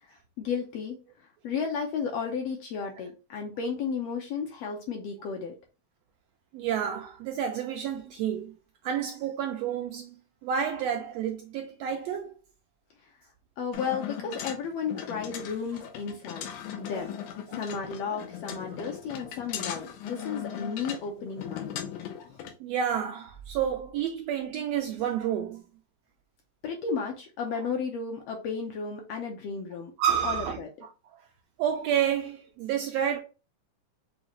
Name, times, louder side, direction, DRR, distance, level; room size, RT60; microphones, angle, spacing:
voice 1, 0.0-5.5 13.6-16.5 16.7-17.1 17.5-21.8 26.6-29.9 30.2-30.7, left 5 dB, 70° left, 1.5 m, -33 dB
voice 2, 6.5-8.5 8.8-10.1 10.4-12.3 17.5-17.6 22.6-25.6 30.0-30.6 31.6-33.2, right 9 dB, 80° right, 1.5 m, -29 dB
sound 1, 13.7-22.5, left 9 dB, 90° left, 2.3 m, -38 dB
6.4 x 2.4 x 2.9 m
omnidirectional pair, 3.4 m